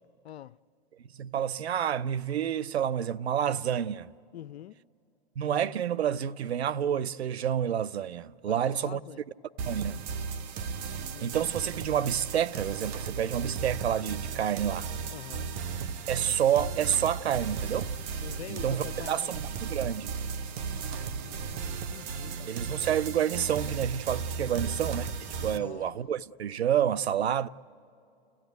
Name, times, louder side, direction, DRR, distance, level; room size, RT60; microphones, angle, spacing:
voice 1, 0.2-0.6 4.3-4.8 8.5-9.2 11.1-11.5 15.1-15.5 18.2-19.4 21.2-22.5 24.4-24.7 25.5-26.0 27.1-27.3, left 11 dB, 85° left, 0.5 m, -45 dB
voice 2, 1.2-4.1 5.4-9.0 9.7-10.1 11.2-14.9 16.1-17.9 18.5-20.2 22.5-25.1 25.4-27.5, right 9 dB, 85° right, 0.6 m, -29 dB
sound 1, 9.6-25.6, right 5 dB, 45° right, 1.0 m, -35 dB
sound 2, 13.9-25.9, equal, 15° right, 3.0 m, -63 dB
30.0 x 15.5 x 9.2 m
hypercardioid pair, 120°, 31 cm